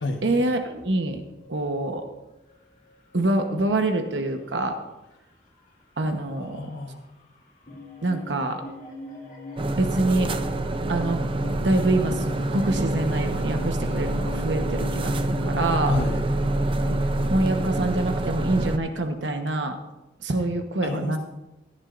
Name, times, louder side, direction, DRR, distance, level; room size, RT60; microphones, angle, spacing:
voice 1, 0.2-1.2 1.5-2.0 3.1-4.8 6.0-6.6 8.0-8.6 9.7-10.3 10.9-11.2 11.6-15.9 17.3-19.8 20.2-21.2, right 2 dB, 90° right, 6 dB, 1.1 m, -25 dB
sound 1, 0.7-3.9 5.6-5.7 6.0-6.2 6.6-6.7 7.2-18.6, left 3 dB, 45° left, 2.6 m, -41 dB
voice 2, 6.4-7.0 15.9-16.2 20.8-21.2, left 2 dB, 90° left, 1 dB, 1.2 m, -30 dB
sound 2, 9.6-18.8, right 2 dB, 30° right, 0.6 m, -26 dB
17.5 x 11.0 x 2.6 m, 1.0 s
head